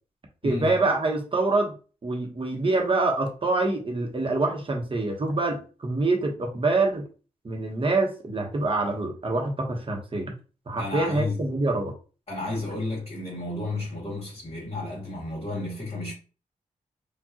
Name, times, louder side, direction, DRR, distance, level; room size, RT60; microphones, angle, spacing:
voice 1, 0.4-1.8 2.0-7.1 7.4-10.3 10.7-11.9, right 2 dB, 40° right, 1.1 m, -25 dB
voice 2, 10.8-11.4 12.3-16.1, left 2 dB, 40° left, 1.8 m, -32 dB
4.6 x 2.5 x 2.9 m
cardioid pair, 70°, 14 cm